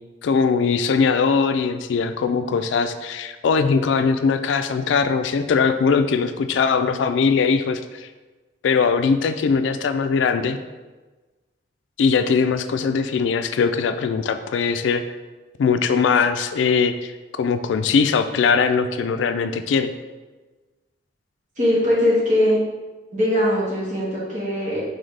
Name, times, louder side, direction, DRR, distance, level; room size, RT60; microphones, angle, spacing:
voice 1, 0.2-8.1 8.6-10.6 12.0-15.0 15.6-19.9, left 5 dB, 85° left, 9 dB, 0.3 m, -20 dB
voice 2, 21.6-22.6 23.1-24.8, left 1 dB, 45° right, -6 dB, 1.4 m, -20 dB
4.0 x 3.9 x 3.2 m, 1.2 s
head